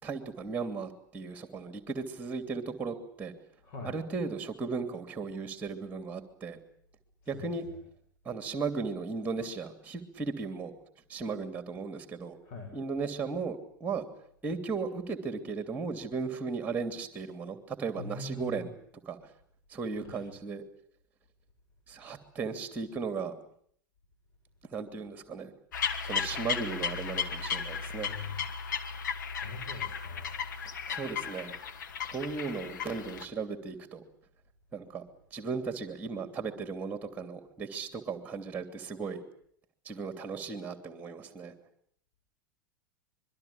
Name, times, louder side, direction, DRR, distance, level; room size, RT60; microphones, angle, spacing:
voice 1, 0.0-3.3 3.8-6.6 7.3-7.6 8.2-10.7 11.1-12.4 12.7-14.1 14.4-18.7 19.1-19.2 19.7-20.6 21.9-23.3 24.7-25.5 26.0-28.1 30.6-31.5 32.1-34.0 34.7-35.0 35.3-39.2 39.8-41.5, right 4 dB, 15° right, 8 dB, 2.9 m, -36 dB
voice 2, 18.0-18.7 20.0-20.2 28.1-28.4 29.4-30.4, left 3 dB, 45° left, 2 dB, 7.0 m, -42 dB
sound 1, 25.7-33.3, left 6 dB, 65° left, 2.3 m, -35 dB
26.0 x 22.5 x 8.6 m, 0.65 s
figure-of-eight pair, 85°, 11 cm